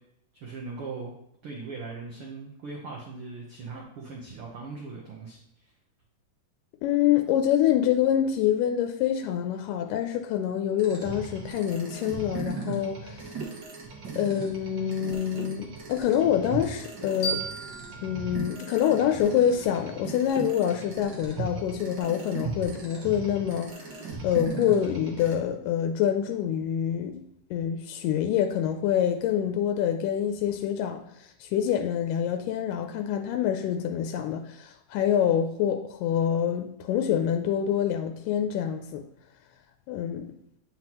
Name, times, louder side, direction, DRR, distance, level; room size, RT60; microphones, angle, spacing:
voice 1, 0.3-1.1 1.4-5.7, right 4 dB, 75° right, -2 dB, 1.3 m, -39 dB
voice 2, 6.8-13.3 14.2-17.4 18.0-27.3 27.5-39.0 39.9-40.3, left 9 dB, 90° left, 6 dB, 2.2 m, -26 dB
sound 1, 10.8-25.3, right 4 dB, 55° right, 1.3 m, -38 dB
sound 2, 17.2-20.0, right 1 dB, 50° left, 2.7 m, -36 dB
7.7 x 5.4 x 3.0 m, 0.78 s
omnidirectional pair, 3.7 m